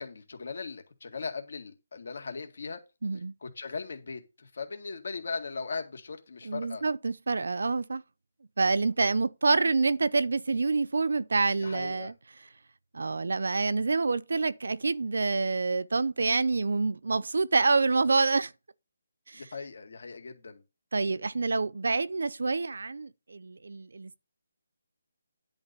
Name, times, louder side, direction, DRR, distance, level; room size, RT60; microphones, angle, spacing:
voice 1, 0.0-2.8 3.4-6.8 11.6-12.1 19.3-20.6, left 4 dB, 50° left, 1.9 m, -38 dB
voice 2, 3.0-3.3 6.4-8.0 8.6-12.1 12.9-18.5 19.3-19.4 20.9-24.2, right 3 dB, 65° right, 0.5 m, -27 dB
10.5 x 3.9 x 6.7 m
hypercardioid pair, 180°, 0 cm